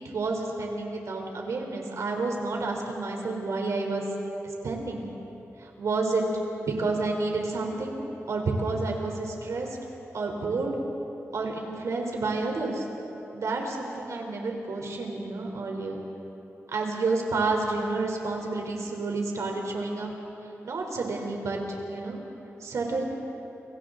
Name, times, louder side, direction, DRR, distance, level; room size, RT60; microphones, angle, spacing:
voice 1, 0.0-4.0 4.6-5.1 5.8-6.2 6.6-8.0 8.3-9.7 10.1-10.7 11.3-12.8 13.3-16.0 16.7-20.1 20.6-21.6 21.9-22.2 22.6-23.0, right 3 dB, 75° right, 1 dB, 3.7 m, -29 dB
29.5 x 24.0 x 3.9 m, 3.0 s
wide cardioid pair, 95°, 5 cm